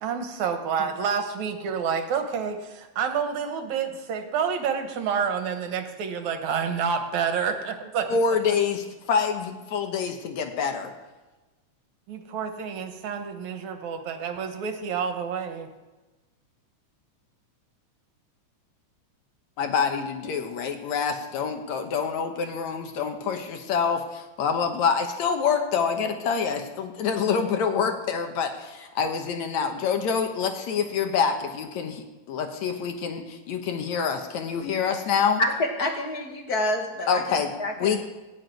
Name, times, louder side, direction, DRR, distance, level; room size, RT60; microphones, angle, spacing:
voice 1, 0.0-8.2 12.1-15.7, right 6 dB, 70° right, 7 dB, 2.5 m, -28 dB
voice 2, 8.1-10.9 19.6-35.4 37.1-37.5 37.8-38.0, left 6 dB, 70° left, 5 dB, 2.3 m, -26 dB
voice 3, 35.4-37.2 37.6-38.0, left 1 dB, 40° left, 2 dB, 1.5 m, -27 dB
18.0 x 6.2 x 9.1 m, 1.2 s
omnidirectional pair, 3.6 m